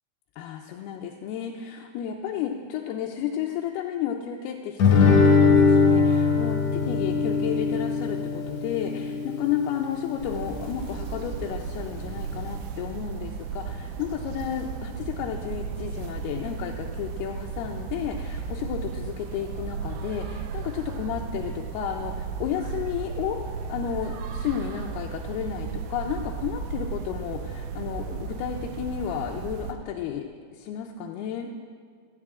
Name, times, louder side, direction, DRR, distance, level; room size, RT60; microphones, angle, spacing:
voice 1, 0.4-23.4 23.7-30.3 30.6-31.5, left 9 dB, 80° left, 1 dB, 2.6 m, -32 dB
Guitar, 4.8-9.9, left 4 dB, 55° left, 3.4 m, -21 dB
sound 1, 10.2-29.7, right 5 dB, 80° right, 2.5 m, -35 dB
16.5 x 13.5 x 3.7 m, 2.1 s
omnidirectional pair, 4.7 m